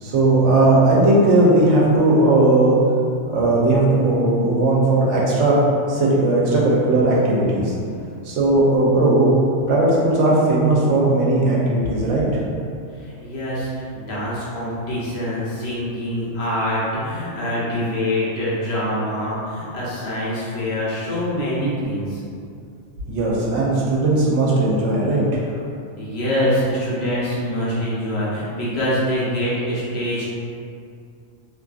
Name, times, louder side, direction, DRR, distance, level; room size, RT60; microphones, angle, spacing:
voice 1, 0.0-2.8 3.3-5.6 5.9-7.7 8.2-9.3 9.7-12.3 23.1-25.2, right 2 dB, 70° right, -5 dB, 0.9 m, -17 dB
voice 2, 7.8-8.1 13.0-22.2 26.0-30.3, equal, 60° left, -8 dB, 0.9 m, -25 dB
2.5 x 2.5 x 2.3 m, 2.4 s
omnidirectional pair, 1.4 m